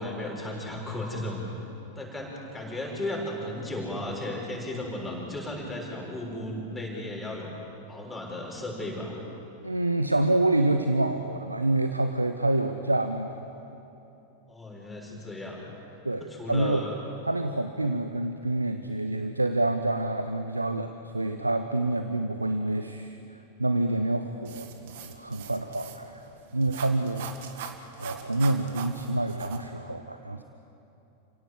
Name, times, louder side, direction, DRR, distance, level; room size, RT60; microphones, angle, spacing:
voice 1, 0.0-1.4 2.0-7.5 7.9-9.2 14.5-15.7 16.3-17.0, left 1 dB, 5° left, -3 dB, 6.9 m, -35 dB
voice 2, 9.6-13.4 16.0-16.9 17.2-26.2 26.5-27.7 28.0-30.4, right 2 dB, 85° right, 8 dB, 0.9 m, -27 dB
sound 1, 24.5-29.6, right 8 dB, 55° right, 1.9 m, -42 dB
29.5 x 17.0 x 8.1 m, 2.9 s
figure-of-eight pair, 90°, 0 cm